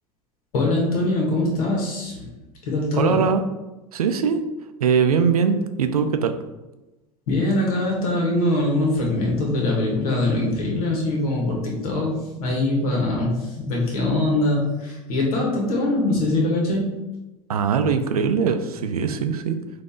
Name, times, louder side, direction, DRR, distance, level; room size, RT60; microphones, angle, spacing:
voice 1, 0.5-2.4 2.6-3.2 7.3-16.9, left 2 dB, 75° left, -2 dB, 1.5 m, -23 dB
voice 2, 2.9-3.4 3.9-4.4 4.8-6.3 17.5-19.6, right 6 dB, 90° right, 8 dB, 0.4 m, -21 dB
4.0 x 2.8 x 3.6 m, 1.0 s
hypercardioid pair, 85°, 19 cm